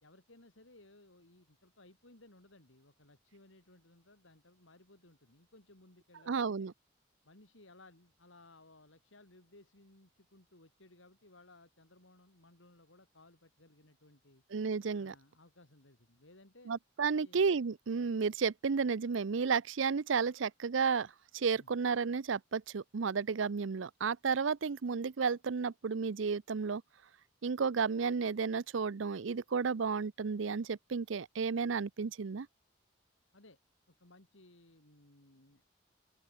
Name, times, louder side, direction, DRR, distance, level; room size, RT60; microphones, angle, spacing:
voice 1, 0.0-6.7 7.2-14.4 15.0-16.7 17.1-17.4 21.6-21.7 33.3-33.6 34.0-35.7, left 2 dB, 75° left, 3.6 m, -61 dB
voice 2, 6.3-6.7 14.5-15.1 16.7-26.8 27.4-32.5, right 5 dB, 70° right, 0.5 m, -32 dB
open air
head